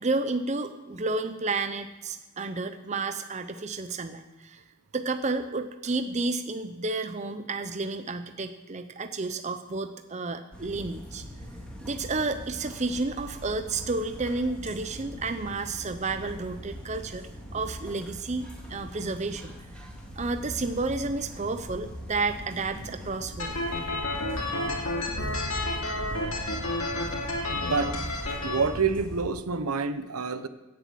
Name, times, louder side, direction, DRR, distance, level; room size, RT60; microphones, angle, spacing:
voice 1, 0.0-4.6 4.9-11.2 11.8-19.9 20.2-23.6, right 3 dB, 30° right, 9 dB, 0.6 m, -31 dB
sound 1, 10.5-29.2, equal, 5° left, 2.4 m, -41 dB
sound 2, 23.4-28.5, left 2 dB, 65° left, 2.7 m, -31 dB
voice 2, 27.5-27.9 28.4-30.5, right 5 dB, 80° right, 12 dB, 0.9 m, -27 dB
17.0 x 7.0 x 7.5 m, 1.1 s
head